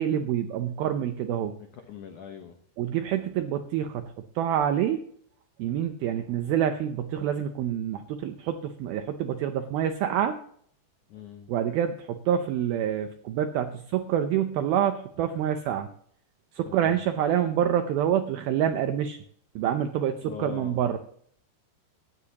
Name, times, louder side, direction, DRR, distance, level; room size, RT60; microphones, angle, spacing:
voice 1, 0.0-1.5 2.8-5.0 5.6-10.3 11.5-15.9 16.5-19.2 19.6-21.0, right 9 dB, 85° right, 8 dB, 2.1 m, -27 dB
voice 2, 1.7-2.6 11.1-11.5 16.6-17.0 20.2-21.0, left 7 dB, 85° left, 5 dB, 1.7 m, -42 dB
17.0 x 13.5 x 2.9 m, 0.63 s
omnidirectional pair, 5.2 m